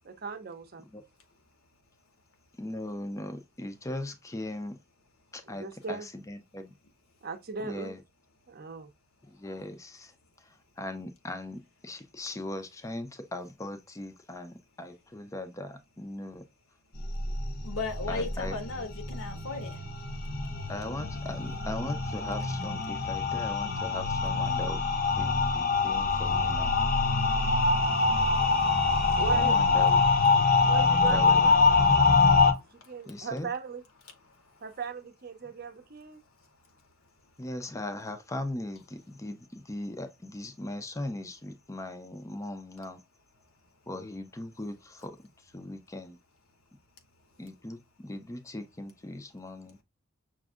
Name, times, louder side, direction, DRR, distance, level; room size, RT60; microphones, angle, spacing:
voice 1, 0.0-0.9 5.4-6.1 7.2-8.0 8.5-8.9 29.2-29.6 30.6-31.7 32.7-33.8 34.6-36.2, right 5 dB, 45° right, 0.6 m, -38 dB
voice 2, 2.6-4.7 5.3-6.7 7.6-8.0 9.4-10.1 10.8-16.4 18.1-18.6 20.7-24.8 25.2-26.7 29.3-30.0 31.1-31.5 33.1-33.5 37.4-43.0 43.9-45.1 45.5-46.2 47.4-49.8, left 1 dB, 15° left, 0.5 m, -39 dB
sound 1, 17.0-32.5, left 4 dB, 45° left, 0.7 m, -25 dB
voice 3, 17.6-19.8 27.8-29.2, left 3 dB, 80° left, 1.3 m, -37 dB
6.0 x 2.6 x 2.4 m
head